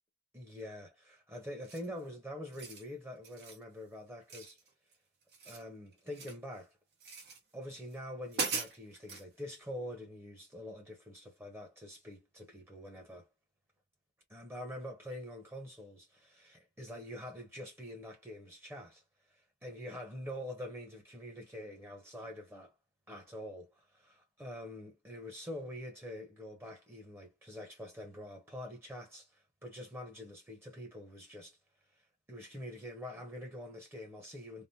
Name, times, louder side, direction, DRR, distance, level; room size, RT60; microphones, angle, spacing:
voice 1, 0.3-4.6 5.4-6.7 7.5-13.3 14.3-19.0 19.6-22.7 23.1-29.3 29.6-31.6 32.3-34.7, left 1 dB, 15° right, 0.9 m, -45 dB
sound 1, 1.6-2.0 2.4-2.9 3.2-3.6 4.3-4.9 5.2-6.4 7.0-7.4 7.9-8.0 8.3-9.2, right 4 dB, 65° right, 1.2 m, -40 dB
3.5 x 2.2 x 2.7 m
head